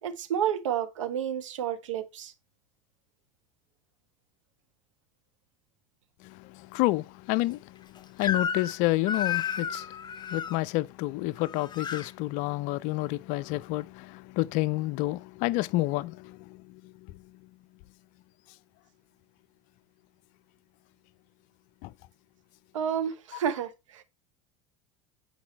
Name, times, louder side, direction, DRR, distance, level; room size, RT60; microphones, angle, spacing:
voice 1, 0.0-2.3 22.7-24.0, right 9 dB, 75° right, 1.3 m, -30 dB
voice 2, 6.2-10.0 10.3-16.6 21.8-21.9, left 18 dB, 50° left, 0.5 m, -29 dB
Crying sobbing / Screech, 8.2-8.8 9.1-10.6 11.4-12.1, left 7 dB, 25° left, 0.9 m, -31 dB
8.5 x 4.7 x 4.4 m
figure-of-eight pair, 75°, 17 cm